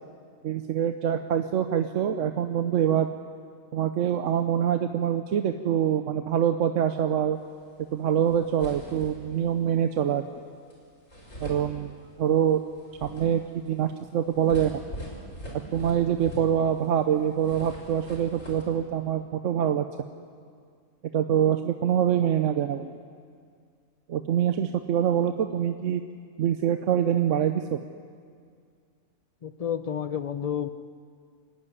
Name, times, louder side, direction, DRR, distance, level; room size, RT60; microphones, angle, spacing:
voice 1, 0.4-3.1 3.7-7.4 7.9-10.3 11.4-11.9 12.2-12.6 13.0-14.8 15.7-19.9 21.1-22.9 24.1-26.0 26.4-27.8, right 9 dB, 70° right, 8 dB, 1.0 m, -25 dB
sound 1, 7.9-8.0 8.3-9.5 10.7-10.8 11.1-12.3 12.7-16.9 17.2-18.6, equal, 70° left, 5.4 m, -42 dB
voice 2, 29.4-30.7, left 8 dB, 45° left, 12 dB, 0.5 m, -30 dB
25.5 x 11.5 x 9.5 m, 2.1 s
omnidirectional pair, 1.4 m